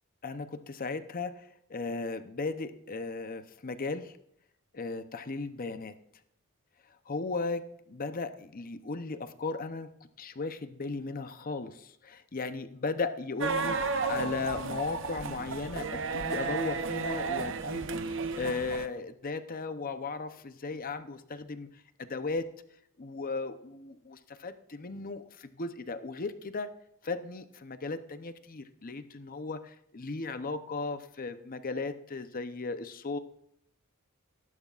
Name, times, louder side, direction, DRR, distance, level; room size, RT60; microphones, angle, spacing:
voice 1, 0.2-1.4 1.7-4.1 4.7-5.9 7.1-7.6 7.9-9.9 10.2-13.8 14.1-21.7 22.0-22.4 23.0-26.7 27.0-33.2, left 3 dB, 40° left, 10 dB, 0.7 m, -36 dB
sound 1, 13.4-18.9, right 4 dB, 60° right, 0.8 m, -33 dB
18.5 x 11.0 x 2.5 m, 0.73 s
head